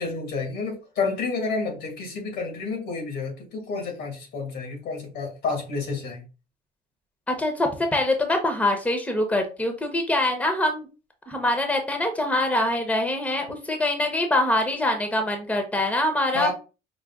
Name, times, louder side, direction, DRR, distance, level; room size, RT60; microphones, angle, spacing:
voice 1, 0.0-6.2 16.3-16.5, left 4 dB, 80° left, 1.9 m, -30 dB
voice 2, 7.3-10.9 11.3-16.5, left 1 dB, 10° left, 0.9 m, -24 dB
5.2 x 2.0 x 3.6 m
cardioid pair, 110°, 17 cm